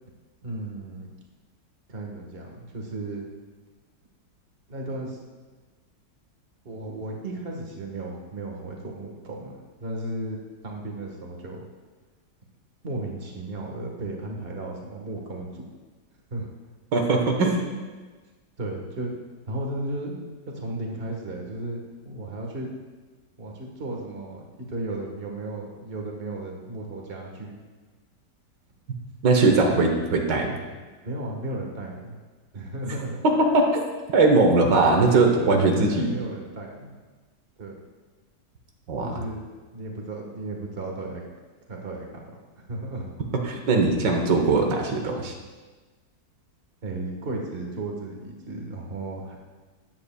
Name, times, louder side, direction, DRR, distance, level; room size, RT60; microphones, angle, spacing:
voice 1, 0.4-1.1 1.9-3.2 4.7-5.2 6.6-9.5 9.8-11.6 12.8-15.6 16.3-16.5 18.6-19.1 19.5-20.2 20.4-22.7 23.4-27.6 29.4-29.8 31.0-32.2 32.5-33.2 35.2-37.0 37.6-37.7 39.0-39.4 39.7-41.2 41.7-42.1 42.6-43.1 46.8-49.4, right 2 dB, 35° right, 0 dB, 1.5 m, -34 dB
voice 2, 16.9-17.6 29.2-30.6 33.4-36.1 38.9-39.1 43.4-45.3, right 3 dB, 85° right, 2 dB, 1.8 m, -20 dB
13.5 x 9.7 x 2.3 m, 1.3 s
omnidirectional pair, 1.9 m